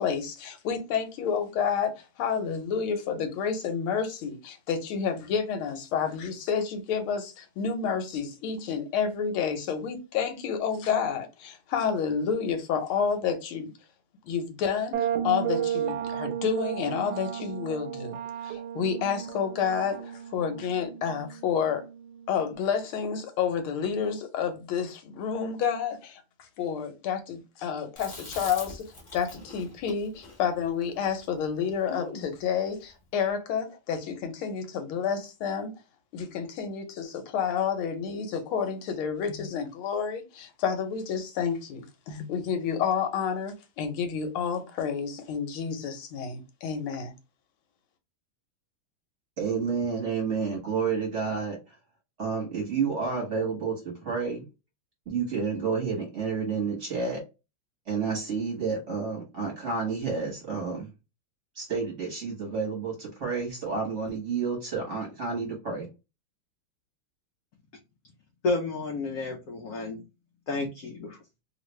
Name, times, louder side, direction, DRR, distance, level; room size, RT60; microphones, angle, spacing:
voice 1, 0.0-13.7 14.2-21.8 22.3-26.2 26.6-35.7 36.1-47.1, left 7 dB, 85° left, 1.6 m, -30 dB
sound 1, 14.9-22.5, right 9 dB, 80° right, 1.3 m, -34 dB
Chewing mastication, 28.0-32.4, left 2 dB, 30° left, 0.9 m, -43 dB
voice 2, 49.4-51.8 52.2-54.4 55.1-57.2 57.9-60.9 61.5-65.9, right 5 dB, 40° right, 1.3 m, -30 dB
voice 3, 68.4-70.0 70.5-71.2, left 3 dB, 70° left, 0.9 m, -31 dB
3.3 x 2.5 x 3.0 m
omnidirectional pair, 2.3 m